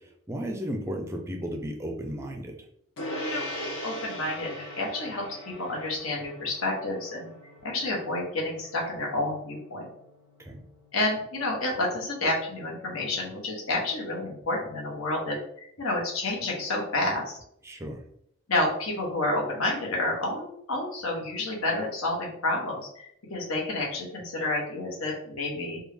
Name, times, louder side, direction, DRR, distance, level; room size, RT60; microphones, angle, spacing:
voice 1, 0.3-2.5 10.4-10.6 17.6-18.0, equal, 10° right, 2 dB, 0.4 m, -34 dB
Gong, 3.0-12.7, equal, 65° left, 0.7 m, -41 dB
voice 2, 3.1-5.3 5.6-7.3 7.6-9.9 10.9-15.4 15.8-17.4 18.5-25.8, left 2 dB, 85° left, -2 dB, 1.1 m, -30 dB
3.4 x 2.3 x 3.4 m, 0.71 s
head